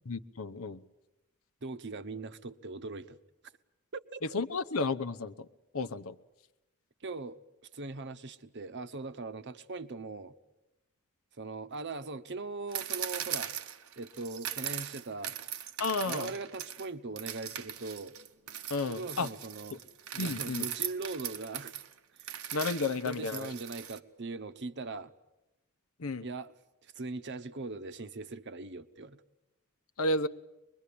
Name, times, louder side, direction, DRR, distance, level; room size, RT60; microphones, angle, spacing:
voice 1, 0.1-0.8 4.3-5.5 5.7-6.1 15.8-16.3 18.7-19.3 20.2-20.7 22.5-23.5 26.0-26.2 30.0-30.3, left 3 dB, 80° left, 0.9 m, -32 dB
voice 2, 1.6-3.2 3.9-4.2 7.0-7.4 7.7-10.4 11.4-13.5 14.0-15.4 16.0-18.1 18.9-19.8 20.1-21.8 22.1-22.4 23.0-25.1 26.2-26.5 26.8-29.2, right 3 dB, 55° right, 0.9 m, -40 dB
sound 1, 12.7-16.9 17.2-24.0, right 10 dB, 85° right, 1.0 m, -39 dB
24.0 x 21.5 x 8.5 m
head